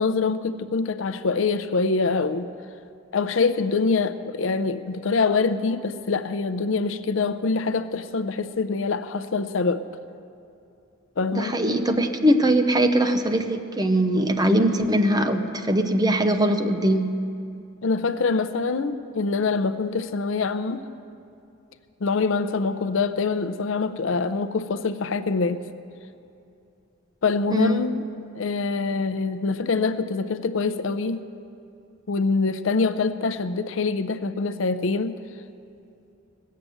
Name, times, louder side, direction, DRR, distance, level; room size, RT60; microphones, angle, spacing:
voice 1, 0.0-2.5 3.1-9.8 11.2-11.6 17.8-20.8 22.0-25.6 27.2-28.0 28.3-31.2 32.1-35.2, left 4 dB, 65° left, 11 dB, 0.5 m, -24 dB
voice 2, 11.3-17.2 27.5-27.9, right 1 dB, 20° right, 7 dB, 0.8 m, -21 dB
18.5 x 7.5 x 7.7 m, 2.6 s
head